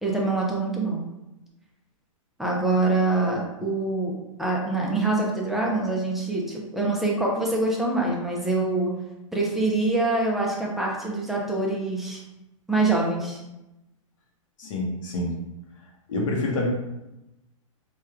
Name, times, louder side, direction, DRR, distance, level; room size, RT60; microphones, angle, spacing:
voice 1, 0.0-1.0 2.4-8.9 9.3-12.2 12.7-13.4, right 2 dB, ahead, -3 dB, 0.4 m, -25 dB
voice 2, 14.6-15.3 16.1-16.7, left 2 dB, 65° left, 0 dB, 0.7 m, -27 dB
3.1 x 2.2 x 2.4 m, 0.95 s
hypercardioid pair, 135°, 17 cm